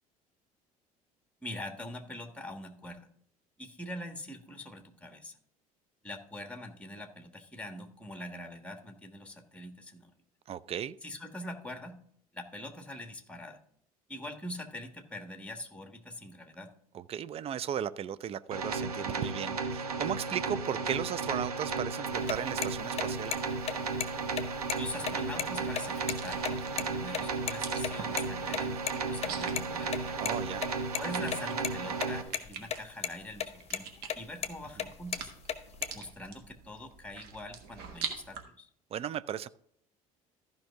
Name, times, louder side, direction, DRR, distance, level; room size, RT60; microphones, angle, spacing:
voice 1, 1.4-3.1 3.6-5.4 6.0-10.1 11.0-12.0 12.3-13.6 14.1-16.7 24.8-30.2 31.0-33.9 34.1-35.3 35.9-38.7, left 1 dB, 5° left, 1.4 m, -43 dB
voice 2, 10.5-11.0 16.9-23.3 30.2-30.6 38.9-39.5, right 9 dB, 35° right, 0.4 m, -36 dB
sound 1, 18.5-32.2, right 4 dB, 85° right, 1.0 m, -34 dB
sound 2, 22.1-27.2 27.5-27.6 27.8-27.9 28.2-28.3 28.5-28.6 28.9-29.0 29.2-30.3 30.6-31.0 31.3-32.1 32.3-32.8 33.0-33.5 33.7-33.8 34.1-34.5 34.8-36.0, left 9 dB, 35° left, 0.9 m, -33 dB
sound 3, 24.4-38.4, right 7 dB, 60° right, 1.4 m, -46 dB
14.0 x 5.3 x 3.5 m
hypercardioid pair, 65°, 19 cm